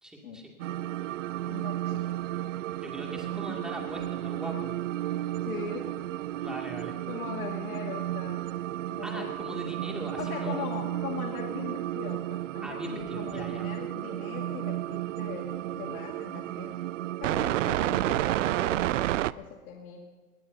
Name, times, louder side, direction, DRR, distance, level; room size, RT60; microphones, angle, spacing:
voice 1, 0.0-0.4 2.8-4.7 6.4-6.9 9.0-10.7 12.6-13.7, right 1 dB, ahead, -1 dB, 2.3 m, -39 dB
sound 1, 0.6-19.3, right 14 dB, 60° right, 0.5 m, -32 dB
voice 2, 1.5-2.0 5.4-5.9 6.4-6.5 7.1-8.5 8.9-9.3 10.2-16.9 17.2-20.0, left 6 dB, 70° left, 0 dB, 2.1 m, -40 dB
21.0 x 19.0 x 2.7 m, 1.4 s
hypercardioid pair, 145°, 44 cm